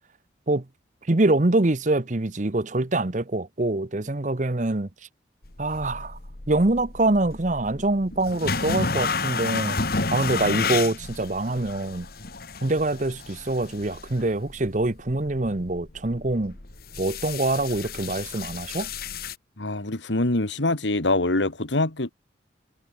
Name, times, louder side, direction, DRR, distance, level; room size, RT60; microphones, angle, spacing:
voice 1, 1.1-4.9 5.6-6.2 6.5-9.8 10.1-12.1 12.6-16.6 17.0-18.9, right 2 dB, 40° right, 1.0 m, -24 dB
sound 1, 5.4-19.4, left 4 dB, 55° left, 1.9 m, -32 dB
voice 2, 19.6-22.1, left 2 dB, 85° left, 2.2 m, -24 dB
head